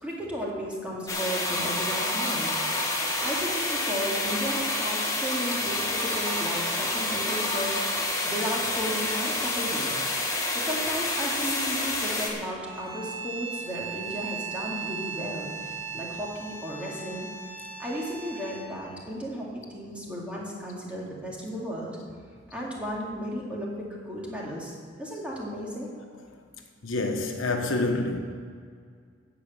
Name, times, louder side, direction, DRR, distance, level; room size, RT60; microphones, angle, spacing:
voice 1, 0.0-2.5 3.2-9.9 10.5-17.3 17.8-22.0 22.5-24.7 25.0-25.9, equal, 5° right, 2.2 m, -34 dB
sound 1, 1.1-12.3, left 2 dB, 15° left, 1.5 m, -28 dB
sound 2, 12.6-18.8, right 6 dB, 40° right, 2.7 m, -38 dB
voice 2, 26.8-28.2, left 2 dB, 75° left, 1.2 m, -27 dB
13.0 x 5.1 x 8.8 m
head